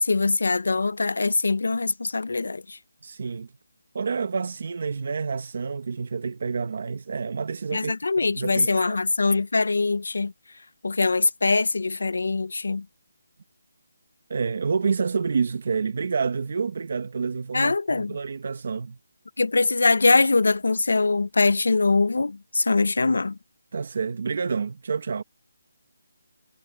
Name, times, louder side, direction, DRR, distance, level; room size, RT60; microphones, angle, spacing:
voice 1, 0.0-2.8 7.7-10.3 10.8-12.8 17.5-18.2 19.4-23.4, left 3 dB, 65° left, 0.6 m, -22 dB
voice 2, 3.0-3.5 3.9-9.0 14.3-19.0 23.7-25.2, right 5 dB, 40° right, 1.0 m, -28 dB
hypercardioid pair, 180°, 0 cm